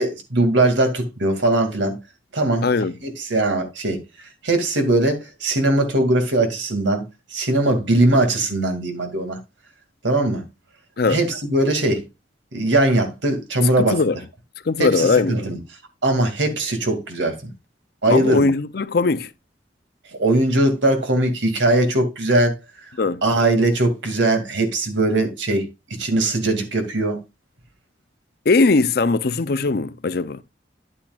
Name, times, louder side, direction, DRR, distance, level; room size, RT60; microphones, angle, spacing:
voice 1, 0.0-2.0 2.3-2.6 3.0-4.0 4.4-7.0 7.3-9.4 10.0-10.4 11.1-12.0 12.5-14.0 14.8-15.6 16.0-17.4 18.0-18.5 20.2-22.6 23.2-27.2, right 2 dB, 80° right, 2.3 m, -20 dB
voice 2, 2.6-3.0 11.0-11.2 13.8-14.2 14.6-15.4 18.1-19.3 23.0-23.2 28.5-30.4, left 3 dB, 55° left, 0.5 m, -19 dB
10.5 x 8.7 x 2.4 m
head